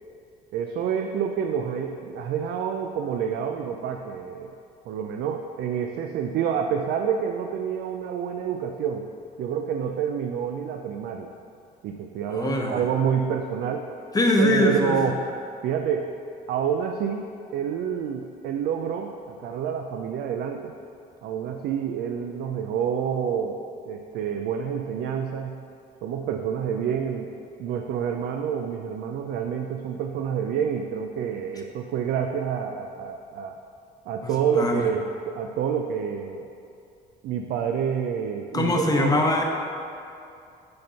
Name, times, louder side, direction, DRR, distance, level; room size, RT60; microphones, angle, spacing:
voice 1, 0.5-4.6 4.9-9.1 9.4-11.3 11.8-13.9 14.4-15.3 15.6-16.1 16.5-20.7 21.2-25.6 26.0-33.6 34.1-36.5 37.2-39.2, right 7 dB, 70° right, 4 dB, 0.5 m, -28 dB
voice 2, 12.3-12.8 14.1-14.9 34.5-34.8 38.5-39.4, left 2 dB, 20° left, 1 dB, 0.9 m, -22 dB
6.4 x 4.4 x 5.7 m, 2.6 s
cardioid pair, 110°, 17 cm